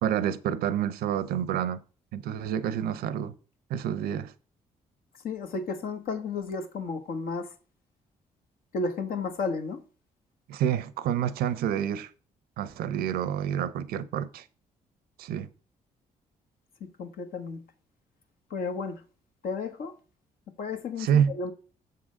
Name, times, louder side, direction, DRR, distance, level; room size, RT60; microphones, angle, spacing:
voice 1, 0.0-1.8 2.1-3.3 3.7-4.3 10.5-12.1 12.6-14.4 15.2-15.5 21.0-21.3, right 9 dB, 80° right, 0.7 m, -28 dB
voice 2, 5.2-7.5 8.7-9.8 17.0-17.6 18.5-19.0 19.4-19.9 20.6-21.5, left 4 dB, 70° left, 1.2 m, -32 dB
6.9 x 3.8 x 6.3 m
supercardioid pair, 60°, 16 cm